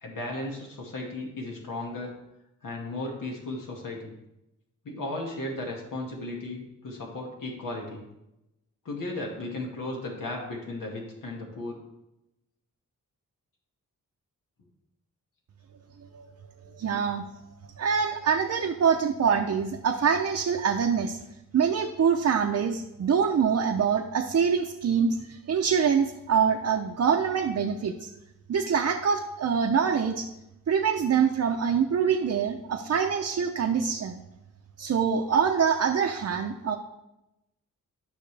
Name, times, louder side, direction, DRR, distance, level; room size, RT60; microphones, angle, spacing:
voice 1, 0.0-2.1 2.6-4.1 4.8-8.0 8.9-11.8 27.1-27.2, left 2 dB, 75° left, -1 dB, 2.0 m, -35 dB
voice 2, 16.6-17.2 17.8-21.2 21.5-28.1 28.5-30.3 30.7-34.2 34.8-36.8, right 6 dB, 55° right, 1 dB, 0.7 m, -25 dB
13.0 x 5.7 x 3.4 m, 0.91 s
cardioid pair, 100°, 32 cm